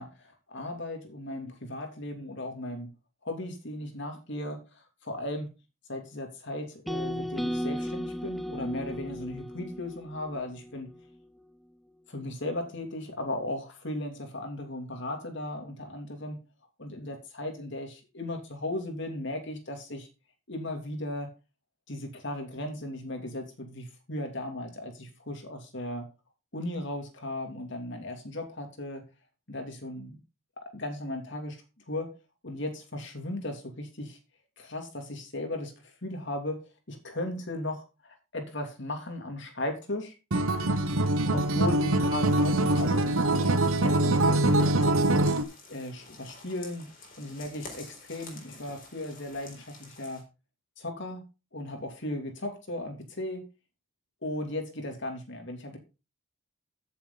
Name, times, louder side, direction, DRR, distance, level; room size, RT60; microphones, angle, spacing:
voice 1, 0.0-2.9 3.2-5.5 5.9-10.9 12.1-16.4 16.8-20.1 20.5-21.3 21.9-26.1 26.5-29.0 29.5-30.2 30.6-31.6 31.9-32.1 32.4-34.2 34.6-40.1 41.3-45.0 45.7-46.9 47.2-50.2 50.8-51.2 51.5-53.4 54.2-55.8, left 1 dB, 55° left, 5 dB, 2.8 m, -36 dB
sound 1, 6.9-11.0, equal, ahead, 0.5 m, -35 dB
Acoustic guitar, 40.3-45.4, right 1 dB, 75° right, 1.0 m, -24 dB
sound 2, 42.1-50.2, left 3 dB, 40° left, 4.2 m, -50 dB
14.0 x 7.0 x 3.9 m, 0.30 s
head